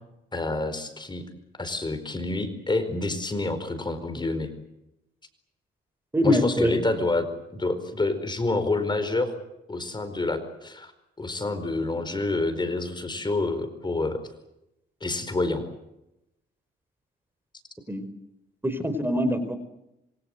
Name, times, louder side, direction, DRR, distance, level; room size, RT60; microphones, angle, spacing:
voice 1, 0.3-1.2 1.6-4.5 6.2-9.3 9.7-10.9 11.2-14.2 15.0-15.6, left 2 dB, 20° left, 9 dB, 4.7 m, -28 dB
voice 2, 6.1-6.8 17.9-18.0 18.6-19.6, left 1 dB, 10° right, 11 dB, 4.8 m, -24 dB
26.5 x 24.0 x 8.0 m, 0.88 s
cardioid pair, 90°, 20 cm